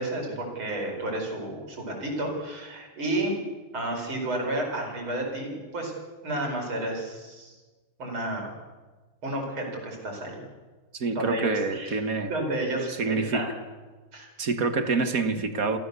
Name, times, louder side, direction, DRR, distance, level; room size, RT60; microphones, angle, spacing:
voice 1, 0.0-3.3 3.7-5.9 6.2-7.5 8.0-8.5 9.2-10.5 11.1-12.0 12.3-13.5 14.1-14.3, right 1 dB, 70° right, 1 dB, 5.8 m, -31 dB
voice 2, 11.0-12.3 13.0-13.5 14.4-15.8, right 4 dB, 45° right, 8 dB, 1.7 m, -26 dB
27.0 x 15.0 x 6.9 m, 1.3 s
omnidirectional pair, 2.4 m